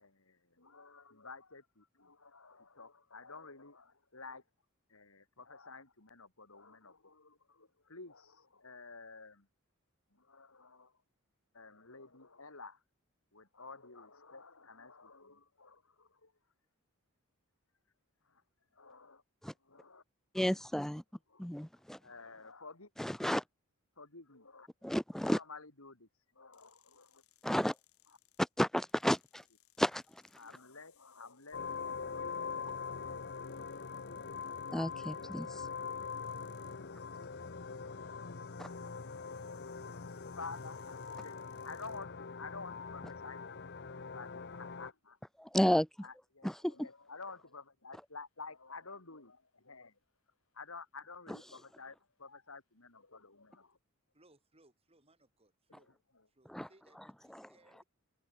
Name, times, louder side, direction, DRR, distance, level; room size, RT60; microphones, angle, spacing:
voice 1, 0.0-4.4 4.9-9.5 10.1-11.0 11.5-12.8 13.3-16.3 18.3-18.4 18.7-19.2 19.6-20.0 21.3-21.5 22.0-22.9 24.0-24.9 25.2-26.1 26.3-27.2 30.4-32.4 32.7-33.1 35.9-37.2 38.0-43.6 43.9-45.2 46.0-50.0 50.5-53.8 56.1-56.3, left 4 dB, 70° left, 3.5 m, -52 dB
voice 2, 20.3-21.0 21.4-22.0 23.0-23.4 24.8-25.4 27.4-27.7 28.6-29.4 29.8-30.0 34.7-35.6 38.6-38.7 45.4-45.9 46.4-46.9 56.5-56.7, equal, ahead, 0.3 m, -32 dB
sound 1, 26.5-42.1, left 15 dB, 85° left, 4.6 m, -69 dB
sound 2, 31.5-44.9, left 5 dB, 50° left, 0.9 m, -43 dB
voice 3, 54.1-55.9 56.3-57.8, right 2 dB, 25° right, 4.9 m, -67 dB
head